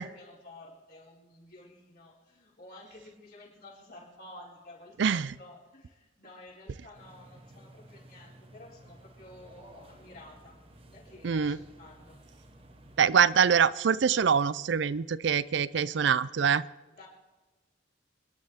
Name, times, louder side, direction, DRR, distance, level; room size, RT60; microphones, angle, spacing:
voice 1, 0.0-10.6 10.9-12.2 16.9-17.1, left 2 dB, 50° left, -5 dB, 5.1 m, -52 dB
voice 2, 5.0-5.3 11.2-11.6 13.0-16.6, right 7 dB, 65° right, 17 dB, 0.4 m, -24 dB
sound 1, 6.9-13.0, right 1 dB, 30° right, 1.3 m, -54 dB
27.5 x 10.5 x 3.6 m, 1.2 s
head